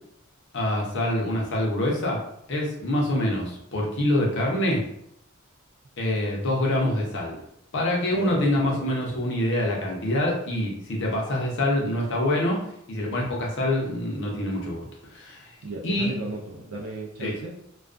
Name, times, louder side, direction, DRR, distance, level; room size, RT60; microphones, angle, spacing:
voice 1, 0.5-4.8 6.0-7.4 7.7-12.6 12.9-15.6 15.8-16.1 17.2-17.3, left 1 dB, 60° left, -2 dB, 0.7 m, -25 dB
voice 2, 8.1-8.9 15.6-17.5, right 2 dB, 90° right, -2 dB, 0.4 m, -35 dB
2.3 x 2.2 x 2.4 m, 0.76 s
head